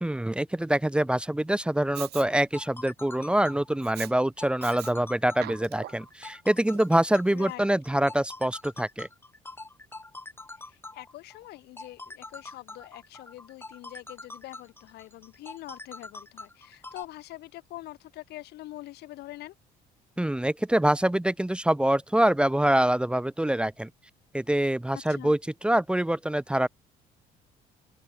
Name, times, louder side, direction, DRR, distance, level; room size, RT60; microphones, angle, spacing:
voice 1, 0.0-9.1 20.2-23.9 24.3-26.7, right 1 dB, 5° right, 1.0 m, -25 dB
Respiratory sounds, 1.9-2.3 3.8-4.1 4.6-4.9 5.3-6.1 6.7-6.8, right 15 dB, 70° right, 2.0 m, -40 dB
sound 1, 2.3-17.0, left 2 dB, 15° left, 5.1 m, -44 dB
voice 2, 7.3-7.6 10.6-19.5 25.1-25.3, left 17 dB, 80° left, 1.6 m, -44 dB
cardioid pair, 110°, 17 cm